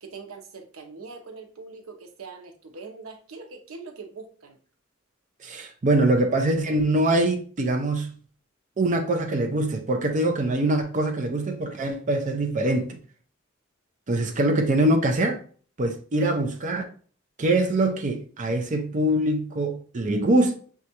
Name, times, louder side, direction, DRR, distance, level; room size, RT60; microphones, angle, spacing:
voice 1, 0.0-4.6, right 4 dB, 85° right, 0.7 m, -42 dB
voice 2, 5.4-8.1 8.8-13.0 14.1-15.4 15.8-16.8 17.4-20.5, right 1 dB, 35° right, 0.5 m, -23 dB
6.2 x 2.4 x 2.8 m
head